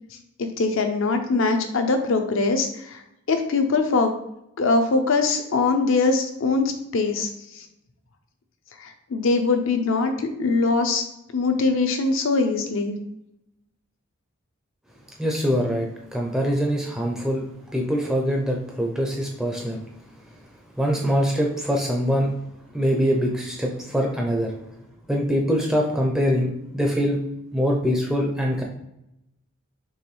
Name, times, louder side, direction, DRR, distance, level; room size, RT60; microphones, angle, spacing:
voice 1, 0.4-3.0 3.3-4.1 4.6-7.6 8.8-11.0 11.3-13.0, left 3 dB, 65° left, 6 dB, 0.5 m, -22 dB
voice 2, 15.2-17.4 17.7-19.8 20.8-22.3 22.7-24.5 25.1-27.2 27.5-28.6, equal, ahead, -1 dB, 0.4 m, -23 dB
4.6 x 3.0 x 3.1 m, 0.84 s
head